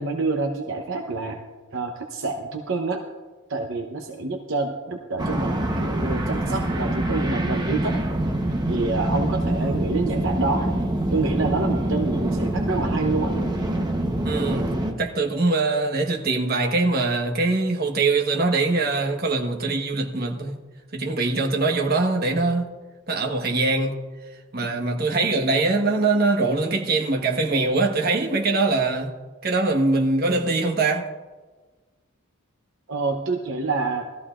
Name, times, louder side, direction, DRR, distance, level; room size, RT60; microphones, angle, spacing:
voice 1, 0.0-1.4 1.7-3.0 3.5-8.0 8.7-10.7 11.1-13.4 32.9-34.1, right 3 dB, 60° right, 0.9 m, -27 dB
sound 1, 5.2-14.9, right 1 dB, 20° right, 0.9 m, -25 dB
voice 2, 14.2-20.6 20.9-22.7 23.1-23.9 24.5-29.1 29.4-31.1, right 3 dB, 45° right, 1.3 m, -23 dB
19.0 x 14.0 x 2.5 m
head